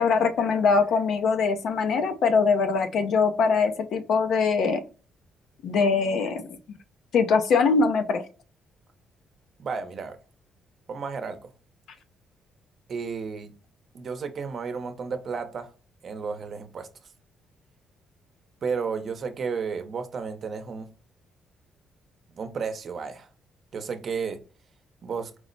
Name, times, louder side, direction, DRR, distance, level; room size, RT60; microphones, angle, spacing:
voice 1, 0.0-4.8 5.6-6.8 7.1-8.3, left 5 dB, 70° left, 0.6 m, -22 dB
voice 2, 9.6-10.2 10.9-11.5 12.9-13.5 13.9-15.7 16.0-16.9 18.6-20.9 22.4-23.3 23.7-24.4 25.0-25.3, right 5 dB, 55° right, 0.7 m, -32 dB
4.7 x 2.1 x 3.9 m
cardioid pair, 90°, 0 cm